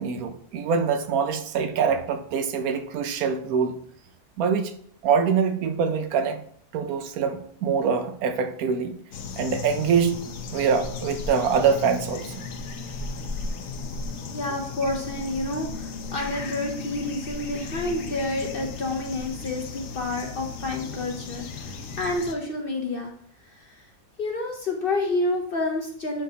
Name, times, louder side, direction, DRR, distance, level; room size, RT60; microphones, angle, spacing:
voice 1, 0.0-3.7 4.4-4.7 5.0-6.4 6.7-9.0 9.4-10.2 10.5-12.5, right 6 dB, 75° right, 9 dB, 1.1 m, -24 dB
sound 1, 9.1-22.3, left 4 dB, 65° left, 1.1 m, -35 dB
voice 2, 14.3-23.1 23.4-23.9 24.2-26.2, left 2 dB, 50° left, 2 dB, 0.7 m, -29 dB
10.0 x 3.6 x 2.8 m, 0.62 s
omnidirectional pair, 1.6 m